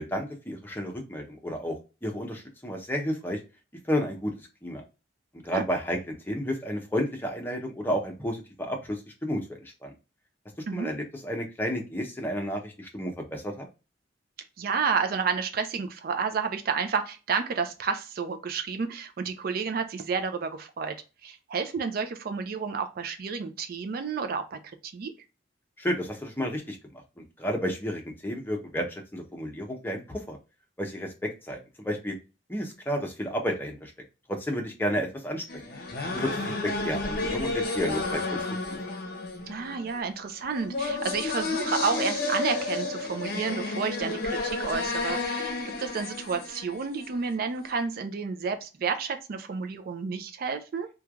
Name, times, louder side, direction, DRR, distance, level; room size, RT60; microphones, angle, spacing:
voice 1, 0.0-1.7 2.0-3.4 3.9-4.3 4.6-4.8 5.4-6.0 6.3-9.4 9.8-9.9 10.7-13.6 25.8-30.4 30.8-32.1 32.5-33.9 34.3-35.4 36.1-38.4 38.7-38.8, equal, 10° left, 2 dB, 0.6 m, -31 dB
voice 2, 14.6-21.0 21.2-25.1 39.5-50.9, right 5 dB, 50° right, 7 dB, 0.4 m, -31 dB
sound 1, 35.5-47.4, left 3 dB, 55° left, 0.6 m, -31 dB
3.1 x 2.3 x 2.2 m, 0.30 s
head